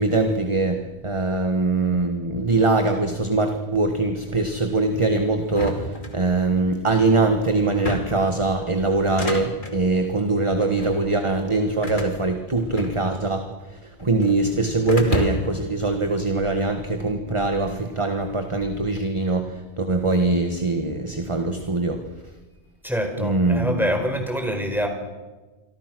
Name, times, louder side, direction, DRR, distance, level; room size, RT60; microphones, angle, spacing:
voice 1, 0.0-13.4 13.7-22.0 23.2-23.8, right 3 dB, 25° right, 6 dB, 1.6 m, -22 dB
sound 1, 5.5-6.6 7.6-8.3 9.0-9.8 10.6-11.0 11.8-13.3 13.6-14.4 14.9-15.6, left 1 dB, 45° left, 2.8 m, -30 dB
voice 2, 22.8-24.9, equal, ahead, 4 dB, 4.7 m, -25 dB
28.0 x 23.5 x 6.2 m, 1.2 s
omnidirectional pair, 1.1 m